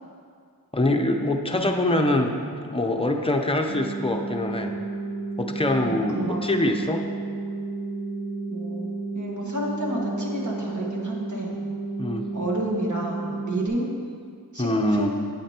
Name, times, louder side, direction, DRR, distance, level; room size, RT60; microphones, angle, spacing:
voice 1, 0.7-2.3 2.7-4.7 5.4-7.0 12.0-12.2 14.6-15.1, left 1 dB, 15° left, 3 dB, 0.7 m, -24 dB
sound 1, 3.7-13.7, right 3 dB, 90° right, 0.8 m, -32 dB
voice 2, 5.8-6.4 8.5-8.9 9.1-11.6 12.3-13.9 14.5-15.1, right 1 dB, 50° right, -3 dB, 1.5 m, -30 dB
8.8 x 8.7 x 2.9 m, 2.2 s
wide cardioid pair, 50°, 37 cm